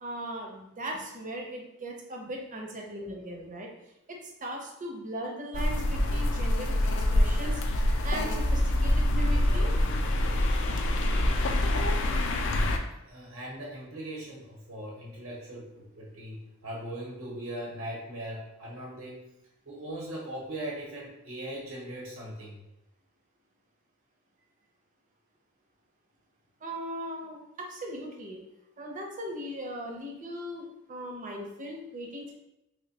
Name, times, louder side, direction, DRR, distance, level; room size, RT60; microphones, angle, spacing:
voice 1, 0.0-3.7 4.1-9.7 26.6-28.4 28.8-32.3, equal, 40° right, 0 dB, 0.6 m, -38 dB
sound 1, 5.5-12.8, left 1 dB, 60° left, 0.4 m, -25 dB
voice 2, 13.1-19.2 19.6-22.6, right 1 dB, 80° right, -3 dB, 0.9 m, -39 dB
3.1 x 2.1 x 4.0 m, 0.89 s
head